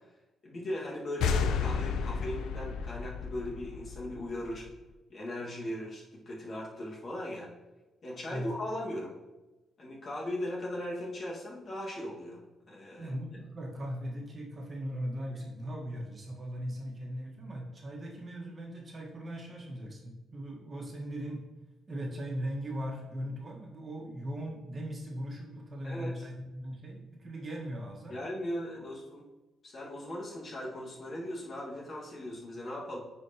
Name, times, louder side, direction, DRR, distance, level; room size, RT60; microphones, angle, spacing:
voice 1, 0.4-4.7 5.1-7.5 8.0-9.2 9.8-13.1 25.8-26.3 28.1-29.2 29.6-33.0, left 1 dB, 45° left, -3 dB, 1.8 m, -38 dB
sound 1, 1.2-4.7, left 6 dB, 80° left, 0.5 m, -32 dB
voice 2, 13.0-21.4 21.9-28.2 28.8-28.9, equal, 35° right, -1 dB, 1.5 m, -39 dB
9.4 x 4.5 x 2.9 m, 1.1 s
cardioid pair, 90°, 0 cm